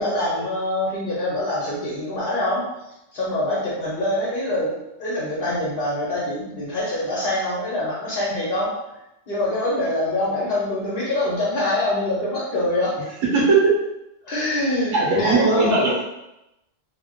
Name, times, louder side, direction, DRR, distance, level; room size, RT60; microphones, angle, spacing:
voice 1, 0.0-13.0 14.2-15.8, left 1 dB, 55° left, -7 dB, 1.0 m, -25 dB
voice 2, 13.3-13.7 14.9-16.0, right 3 dB, 90° right, -3 dB, 1.0 m, -18 dB
2.8 x 2.0 x 3.6 m, 0.90 s
omnidirectional pair, 1.3 m